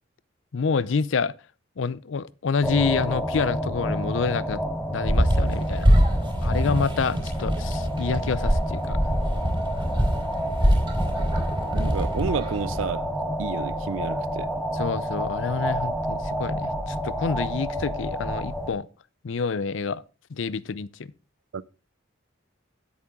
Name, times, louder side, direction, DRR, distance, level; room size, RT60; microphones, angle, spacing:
voice 1, 0.5-1.3 1.8-4.6 4.9-5.9 6.4-9.0 14.7-18.9 19.2-20.0 20.3-21.1, left 5 dB, 70° left, 0.5 m, -27 dB
sound 1, 2.6-18.7, equal, ahead, 1.1 m, -30 dB
sound 2, 5.0-12.8, equal, 25° right, 4.2 m, -24 dB
voice 2, 11.7-13.1 13.4-14.5 21.5-21.7, right 5 dB, 75° right, 0.4 m, -30 dB
9.7 x 8.5 x 3.6 m
head